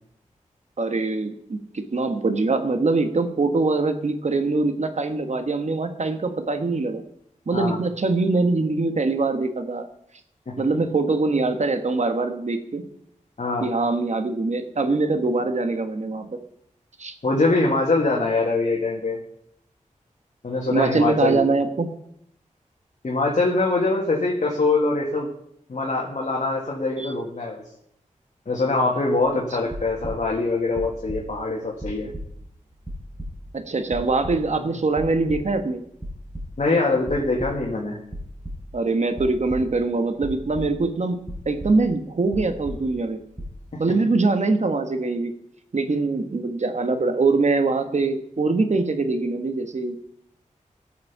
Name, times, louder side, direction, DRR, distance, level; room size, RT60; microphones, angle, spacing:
voice 1, 0.8-7.0 7.5-9.9 10.6-12.8 13.6-16.4 17.0-17.1 20.7-21.9 27.0-27.1 33.5-35.8 38.7-41.2 41.4-43.2 43.8-45.3 45.7-50.0, right 3 dB, 55° right, 7 dB, 1.3 m, -23 dB
voice 2, 13.4-13.7 17.2-19.2 20.4-21.4 23.0-25.3 25.7-27.6 28.5-32.1 36.6-38.0 43.7-43.8, left 3 dB, 60° left, -2 dB, 2.0 m, -23 dB
sound 1, 29.7-30.4 30.7-31.5 31.8-33.5 33.9-34.7 35.0-35.7 36.0-36.7 37.0-37.7 38.1-38.9 39.1-39.8 40.2-41.0 41.3-42.0 42.3-43.1 43.3-43.6, equal, 20° right, 3.9 m, -36 dB
17.0 x 6.6 x 5.5 m, 0.74 s
wide cardioid pair, 80°, 14 cm